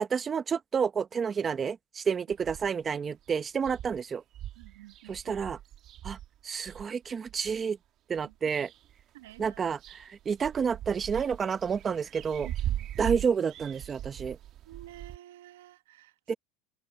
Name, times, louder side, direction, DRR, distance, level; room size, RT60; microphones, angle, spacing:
voice 1, 0.0-4.2 5.1-5.6 6.0-6.2 6.4-7.8 8.1-8.7 9.4-12.5 13.0-14.4 16.3-16.4, right 6 dB, 25° right, 0.9 m, -30 dB
sound 1, 2.3-2.9 3.3-3.4 3.6-7.6 8.2-9.0 9.3-15.2, right 12 dB, 45° right, 1.9 m, -40 dB
voice 2, 4.6-5.1 8.2-8.3 9.1-9.7 12.4-12.9 14.7-16.1, right 15 dB, 90° right, 1.8 m, -50 dB
supercardioid pair, 125°, 0 cm